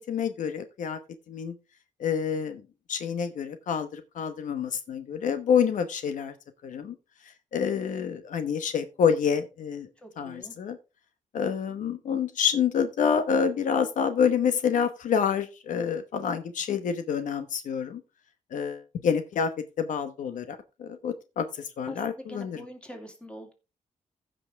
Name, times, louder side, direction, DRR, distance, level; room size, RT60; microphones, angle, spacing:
voice 1, 0.1-1.0 1.3-1.6 2.0-2.6 2.9-6.3 6.6-6.9 7.5-9.9 10.2-10.8 11.3-18.0 18.5-19.5 19.8-22.6, left 7 dB, 70° left, 9 dB, 1.0 m, -27 dB
voice 2, 10.0-10.5 21.9-23.5, equal, 10° left, 3 dB, 2.4 m, -44 dB
15.5 x 5.4 x 3.4 m, 0.29 s
cardioid pair, 130°, 13 cm